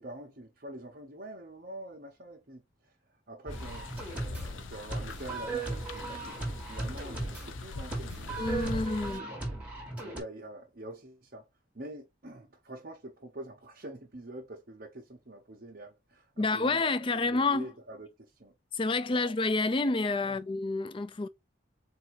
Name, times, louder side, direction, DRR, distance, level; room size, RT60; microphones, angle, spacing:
voice 1, 0.0-8.8 9.2-9.6 10.0-11.5 11.7-16.9 17.2-18.5 19.1-19.3 20.2-20.4, right 1 dB, 50° right, 1.0 m, -46 dB
sound 1, 3.4-10.2, right 2 dB, 5° right, 1.6 m, -37 dB
sound 2, 3.5-9.2, left 3 dB, 90° left, 0.7 m, -42 dB
voice 2, 8.4-9.3 16.4-17.7 18.7-21.3, left 3 dB, 25° left, 0.4 m, -29 dB
4.4 x 2.6 x 4.7 m
head